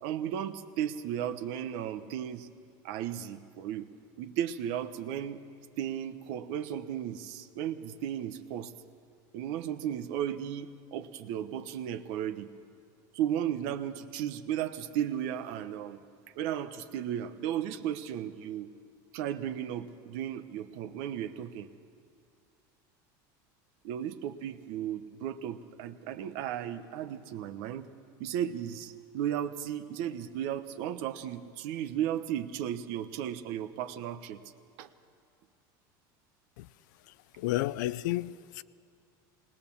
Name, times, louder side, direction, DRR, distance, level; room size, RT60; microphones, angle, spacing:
voice 1, 0.0-2.5 2.8-3.9 4.2-5.4 5.8-8.7 9.3-12.5 13.1-16.0 16.4-18.7 19.1-21.7 23.8-27.9 28.2-34.4 34.8-34.9, right 10 dB, 65° right, 1.0 m, -35 dB
voice 2, 37.4-38.6, left 16 dB, 85° left, 0.5 m, -31 dB
20.0 x 20.0 x 7.1 m
cardioid pair, 150°, 10 cm